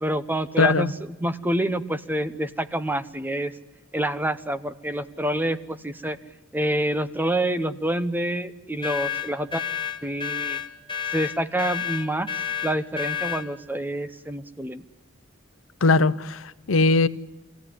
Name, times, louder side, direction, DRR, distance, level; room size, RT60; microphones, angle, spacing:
voice 1, 0.0-3.5 3.9-6.2 6.5-9.6 10.0-10.6 11.1-12.3 12.6-14.8, right 1 dB, 10° right, 0.8 m, -27 dB
voice 2, 0.6-0.9 15.8-17.1, left 3 dB, 75° left, 0.7 m, -20 dB
sound 1, 8.8-13.5, left 9 dB, 25° left, 1.4 m, -30 dB
23.5 x 16.0 x 10.0 m
head